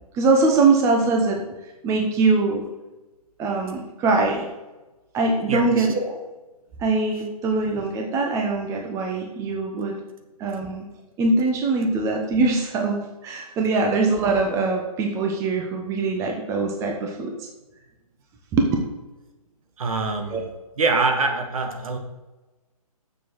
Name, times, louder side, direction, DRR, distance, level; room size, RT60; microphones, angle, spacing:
voice 1, 0.1-1.5 1.8-2.6 3.4-4.5 5.1-6.2 6.8-10.0 10.4-10.9 11.2-17.3 18.5-18.8 20.3-20.4, right 3 dB, 15° right, 2 dB, 1.0 m, -22 dB
voice 2, 5.5-5.9 19.8-20.4 20.8-22.0, right 3 dB, 60° right, 5 dB, 1.8 m, -24 dB
7.1 x 6.9 x 6.2 m, 1.1 s
hypercardioid pair, 140°, 20 cm